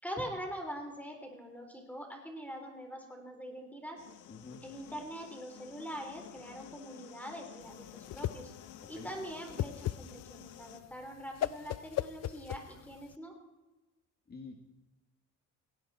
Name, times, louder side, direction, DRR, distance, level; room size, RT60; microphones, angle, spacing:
voice 1, 0.0-4.0 4.6-8.5 8.9-13.3, equal, 5° left, 3 dB, 3.8 m, -43 dB
sound 1, 4.0-10.8, left 11 dB, 90° left, 1.3 m, -52 dB
voice 2, 4.3-4.6 8.9-9.1 14.3-14.7, left 4 dB, 35° left, 3 dB, 1.9 m, -48 dB
Whoosh swoosh swish, 7.6-13.1, left 13 dB, 60° left, 0.6 m, -38 dB
18.5 x 17.0 x 4.3 m, 1.1 s
cardioid pair, 90°, 30 cm